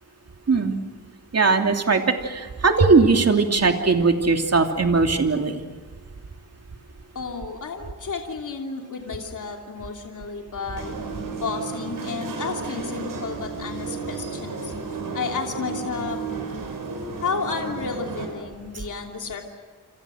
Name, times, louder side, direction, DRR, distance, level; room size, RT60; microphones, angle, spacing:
voice 1, 1.3-5.7, right 4 dB, 45° right, 4 dB, 3.0 m, -19 dB
voice 2, 7.1-10.9 11.4-14.7 15.1-16.2 17.2-19.4, left 5 dB, 60° left, 2 dB, 3.0 m, -32 dB
sound 1, 10.8-18.3, right 4 dB, 75° right, 6.8 m, -33 dB
28.5 x 28.0 x 6.4 m, 1.5 s
wide cardioid pair, 100°, 34 cm